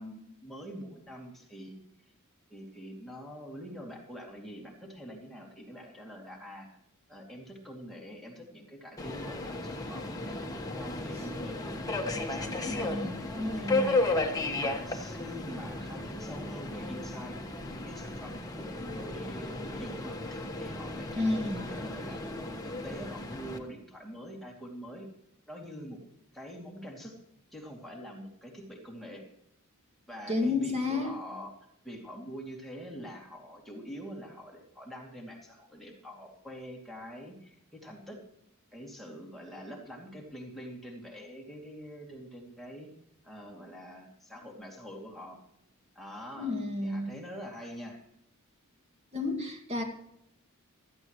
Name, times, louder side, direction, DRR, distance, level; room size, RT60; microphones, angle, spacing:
voice 1, 0.0-1.8 2.5-6.7 7.1-12.9 13.5-17.5 17.8-22.2 22.6-25.1 25.5-26.0 26.3-27.2 27.5-29.3 30.1-31.5 31.8-38.2 38.7-42.9 43.2-45.4 45.9-46.5 46.8-48.0, equal, ahead, -2 dB, 2.6 m, -45 dB
Subway metro underground, 9.0-23.6, left 2 dB, 15° left, 1.4 m, -34 dB
voice 2, 12.6-13.9 21.1-21.6 30.3-31.1 46.4-47.1 49.1-49.8, left 2 dB, 30° right, 3 dB, 2.1 m, -31 dB
16.5 x 13.5 x 3.1 m, 0.77 s
head